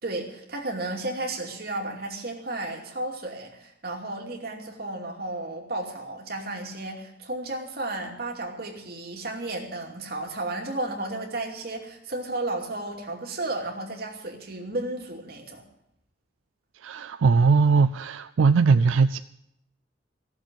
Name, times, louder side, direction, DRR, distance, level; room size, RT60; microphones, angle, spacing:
voice 1, 0.0-15.6, right 2 dB, 50° right, 0 dB, 2.7 m, -33 dB
voice 2, 16.8-19.2, right 4 dB, 90° right, 12 dB, 0.4 m, -20 dB
15.5 x 7.4 x 9.4 m, 0.81 s
head